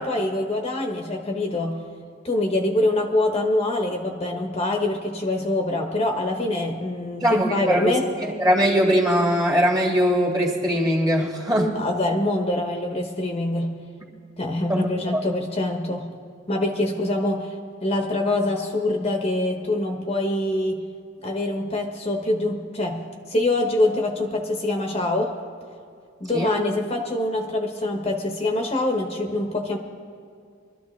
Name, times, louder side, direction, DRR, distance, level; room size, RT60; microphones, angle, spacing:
voice 1, 0.0-1.8 2.2-8.1 11.7-13.8 14.4-16.1 16.5-17.5 17.8-20.8 21.2-25.3 26.2-29.8, left 1 dB, 30° left, 2 dB, 1.0 m, -24 dB
voice 2, 7.2-11.7 14.7-14.9 15.1-15.2 26.3-26.6, equal, 20° right, -2 dB, 1.9 m, -21 dB
23.0 x 13.0 x 3.2 m, 2.3 s
head